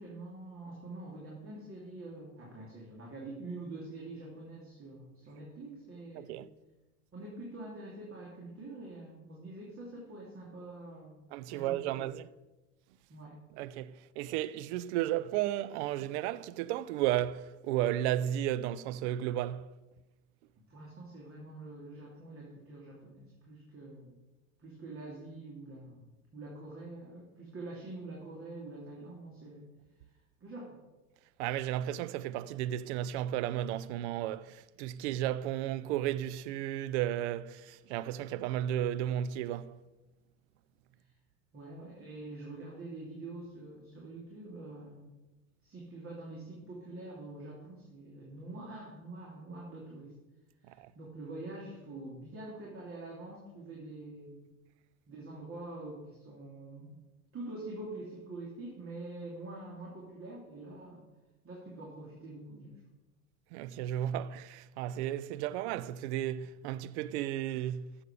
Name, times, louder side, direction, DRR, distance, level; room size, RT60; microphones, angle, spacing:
voice 1, 0.0-6.4 7.1-12.1 13.1-13.4 20.7-24.2 24.6-29.6 30.4-30.8 41.0-41.1 41.5-45.2 45.6-50.1 50.6-54.5 55.1-56.9 57.3-61.0 61.4-62.8, right 2 dB, 30° right, 2.9 m, -45 dB
voice 2, 6.2-6.5 11.3-12.3 13.6-19.7 31.4-39.8 50.7-50.9 63.5-67.9, right 12 dB, 50° right, 0.6 m, -34 dB
14.0 x 7.1 x 5.1 m
figure-of-eight pair, 75°, 44 cm